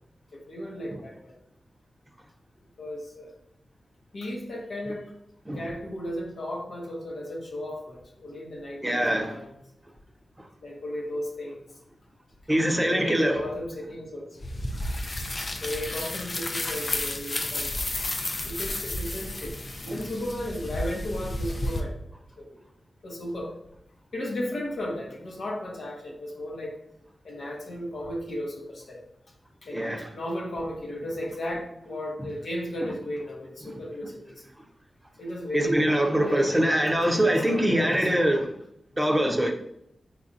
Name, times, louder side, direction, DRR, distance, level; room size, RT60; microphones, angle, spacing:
voice 1, 0.3-1.3 2.8-3.3 4.1-5.1 5.5-9.5 10.6-11.7 12.8-14.4 15.6-17.7 18.4-22.0 22.4-22.6 23.0-23.5 24.1-26.8 27.2-29.0 29.6-29.9 30.1-34.4 35.2-38.1, equal, 70° left, -1 dB, 0.9 m, -35 dB
voice 2, 8.8-9.4 12.5-13.4 29.7-30.1 33.6-33.7 35.5-38.5 39.0-39.5, right 1 dB, 15° right, 2 dB, 0.7 m, -23 dB
sound 1, 14.4-21.8, left 1 dB, 50° left, 0.5 m, -32 dB
3.8 x 3.4 x 2.6 m, 0.74 s
cardioid pair, 55°, 0 cm